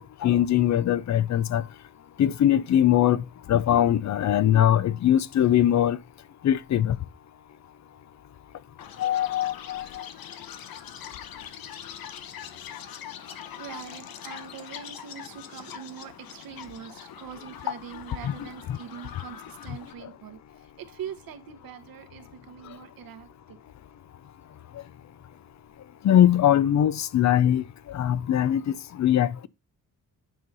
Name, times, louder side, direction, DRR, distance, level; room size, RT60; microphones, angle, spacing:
voice 1, 0.0-1.6 2.2-6.0 6.4-7.0 9.0-10.1 18.2-18.3 18.7-18.8 26.0-29.5, left 11 dB, 55° left, 0.5 m, -22 dB
Chirp tweet, 8.8-19.9, left 9 dB, 85° left, 0.9 m, -43 dB
voice 2, 13.6-20.4 20.8-23.6, right 8 dB, 80° right, 1.1 m, -42 dB
9.3 x 3.9 x 4.0 m
cardioid pair, 100°, 34 cm